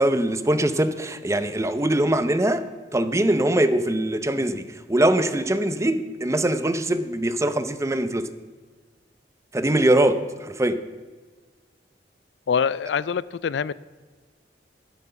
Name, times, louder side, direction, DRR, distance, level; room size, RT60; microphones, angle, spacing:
voice 1, 0.0-2.6 2.9-8.3 9.5-10.8, right 1 dB, 15° right, 0.7 m, -22 dB
voice 2, 12.5-13.7, left 6 dB, 80° left, 0.4 m, -24 dB
11.5 x 11.5 x 5.7 m
head